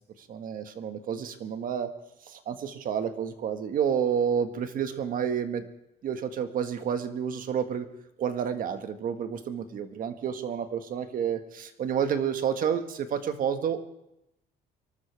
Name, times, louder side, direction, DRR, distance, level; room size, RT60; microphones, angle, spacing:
voice 1, 0.3-1.9 2.3-5.6 6.0-7.9 8.2-13.8, right 8 dB, 55° right, 8 dB, 1.6 m, -30 dB
24.5 x 13.0 x 3.5 m, 0.82 s
cardioid pair, 110°, 17 cm